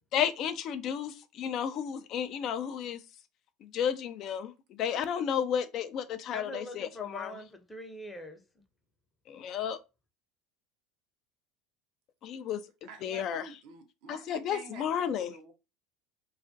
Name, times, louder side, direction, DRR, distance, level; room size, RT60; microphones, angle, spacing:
voice 1, 0.1-3.0 3.6-4.5 4.8-7.4 9.3-9.8 12.2-12.6 13.0-13.5 14.1-15.3, left 8 dB, 55° left, 0.3 m, -32 dB
voice 2, 6.3-8.4, equal, 15° left, 0.6 m, -43 dB
voice 3, 12.8-15.5, right 5 dB, 70° right, 0.6 m, -49 dB
2.3 x 2.1 x 2.5 m
hypercardioid pair, 90°, 0 cm